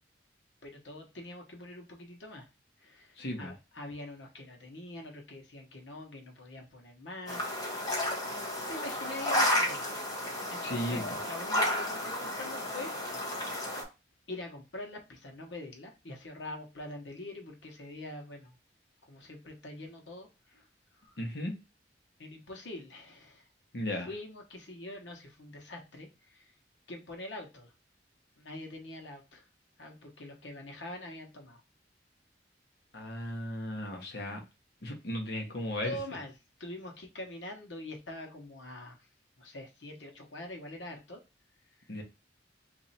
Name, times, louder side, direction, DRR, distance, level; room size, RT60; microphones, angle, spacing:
voice 1, 0.6-2.5 2.8-7.8 8.7-10.0 10.5-12.9 14.3-18.6 19.1-20.3 20.5-20.6 21.0-21.2 22.2-23.5 24.0-26.5 26.9-27.7 28.4-29.4 29.8-31.6 35.8-36.3 36.6-39.0 39.4-41.2, left 1 dB, 90° left, 2 dB, 1.1 m, -44 dB
voice 2, 3.2-3.5 10.6-11.2 21.2-21.5 23.7-24.1 32.9-34.4 34.8-36.0 41.9-42.0, left 1 dB, 60° left, 1 dB, 1.1 m, -35 dB
sound 1, 7.3-13.8, left 1 dB, 20° left, 1.0 m, -32 dB
3.2 x 2.7 x 4.1 m, 0.27 s
head